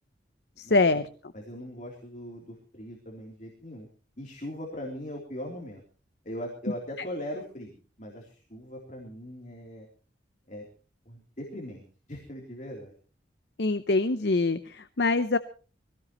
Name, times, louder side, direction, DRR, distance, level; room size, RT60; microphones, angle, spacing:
voice 1, 0.6-1.1 13.6-15.4, left 3 dB, 65° left, 11 dB, 0.7 m, -24 dB
voice 2, 1.3-3.9 4.2-5.8 6.2-9.9 10.5-10.6 11.0-11.8 12.1-12.9, equal, 40° left, -1 dB, 3.4 m, -40 dB
23.5 x 17.5 x 3.1 m, 0.38 s
head